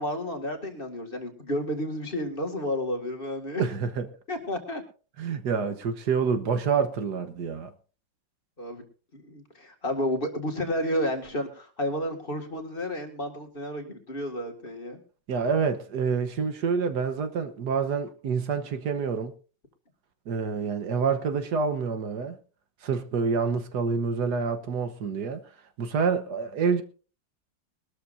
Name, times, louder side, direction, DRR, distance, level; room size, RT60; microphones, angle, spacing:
voice 1, 0.0-3.6 4.3-4.8 8.6-8.8 9.1-15.0, left 1 dB, 30° left, 2.2 m, -31 dB
voice 2, 3.6-4.1 5.2-7.7 15.3-19.3 20.3-22.3 22.8-25.4 25.8-26.8, right 5 dB, 60° right, 1.6 m, -27 dB
22.0 x 13.0 x 2.6 m
omnidirectional pair, 2.1 m